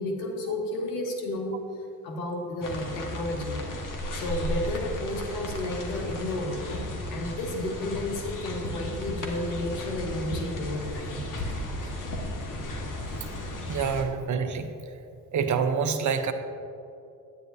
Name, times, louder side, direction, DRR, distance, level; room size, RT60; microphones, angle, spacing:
voice 1, 0.0-1.6 2.0-3.6 4.1-6.6 7.1-11.3, left 1 dB, 90° left, 2 dB, 1.3 m, -32 dB
sound 1, 2.6-14.0, left 1 dB, 50° left, 1.5 m, -34 dB
voice 2, 13.7-14.7 15.3-16.3, right 6 dB, 45° right, 8 dB, 0.9 m, -27 dB
10.0 x 9.1 x 2.7 m, 2.6 s
hypercardioid pair, 55°, 41 cm